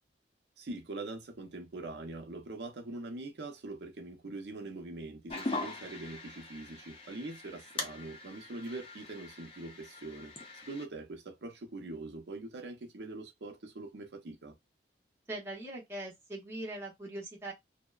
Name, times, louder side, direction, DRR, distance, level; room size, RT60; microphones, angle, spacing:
voice 1, 0.6-14.5, right 2 dB, 70° right, 0.6 m, -43 dB
sound 1, 5.3-10.8, left 2 dB, 35° left, 0.5 m, -42 dB
voice 2, 15.3-17.5, right 1 dB, 15° right, 0.6 m, -41 dB
2.6 x 2.1 x 2.3 m
head